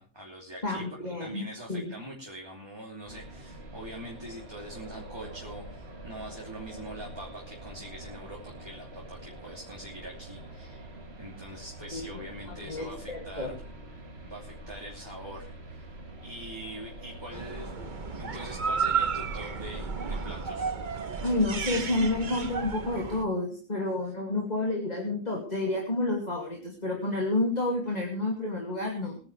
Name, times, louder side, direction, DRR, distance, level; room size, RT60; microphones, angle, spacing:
voice 1, 0.0-10.9 11.2-13.6 14.2-15.9 16.2-17.7 18.0-20.8, right 1 dB, 20° right, -2 dB, 3.1 m, -43 dB
voice 2, 0.6-1.4 1.7-1.9 11.9-12.0 12.5-13.5 21.2-29.2, left 2 dB, 35° left, -1 dB, 2.8 m, -30 dB
sound 1, 3.1-19.9, right 1 dB, 60° right, 2.2 m, -45 dB
sound 2, 17.3-23.3, right 5 dB, 45° right, 1.1 m, -32 dB
22.5 x 10.5 x 3.4 m, 0.41 s
omnidirectional pair, 1.2 m